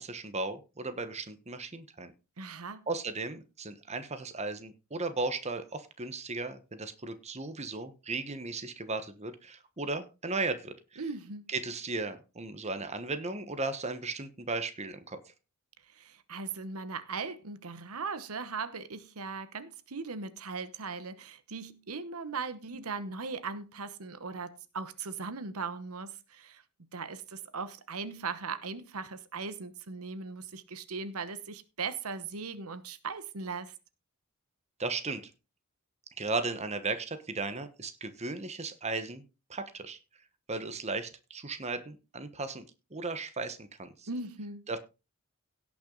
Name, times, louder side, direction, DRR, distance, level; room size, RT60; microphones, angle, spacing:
voice 1, 0.0-2.1 2.9-11.0 11.5-15.2 34.8-35.3 36.2-39.2 39.5-40.0 40.5-44.1 44.7-44.8, right 3 dB, 30° right, 1.2 m, -36 dB
voice 2, 2.4-2.8 11.0-11.5 15.9-26.6 26.9-33.7 44.1-44.6, right 4 dB, 90° right, 1.0 m, -39 dB
17.0 x 6.1 x 3.9 m
head